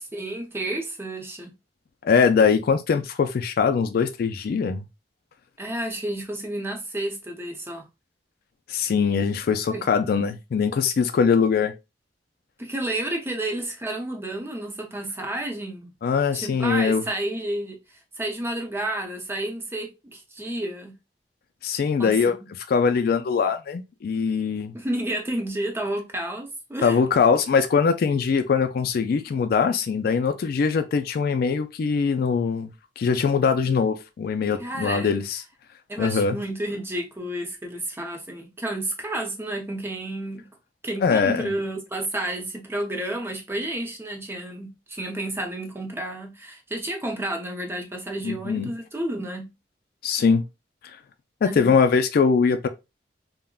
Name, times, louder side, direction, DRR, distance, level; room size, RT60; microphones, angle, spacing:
voice 1, 0.1-1.5 5.6-7.9 9.7-9.8 12.6-15.9 16.3-17.8 18.2-20.9 22.0-22.4 24.7-27.0 34.6-35.1 35.9-40.5 40.8-49.5 51.4-51.7, right 1 dB, 15° right, 0.6 m, -31 dB
voice 2, 2.0-4.8 8.7-11.7 16.0-17.0 21.6-22.4 22.7-24.7 26.8-32.7 33.0-35.4 36.0-36.4 41.0-41.5 48.2-48.7 50.0-50.4 51.4-52.7, left 5 dB, 55° left, 0.3 m, -22 dB
3.5 x 2.1 x 2.3 m
head